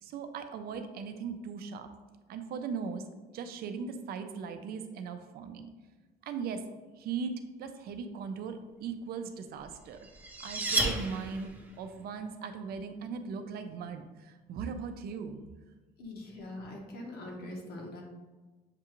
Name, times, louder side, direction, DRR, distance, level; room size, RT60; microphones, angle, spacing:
voice 1, 0.0-1.9 2.3-3.1 3.3-5.7 6.2-6.7 7.0-10.1 10.4-15.4, right 5 dB, 65° right, 8 dB, 0.5 m, -39 dB
sound 1, 9.7-11.8, right 1 dB, 10° right, 0.6 m, -32 dB
voice 2, 16.0-18.0, left 1 dB, 65° left, 0 dB, 1.1 m, -42 dB
6.6 x 2.4 x 3.0 m, 1.2 s
cardioid pair, 110°, 17 cm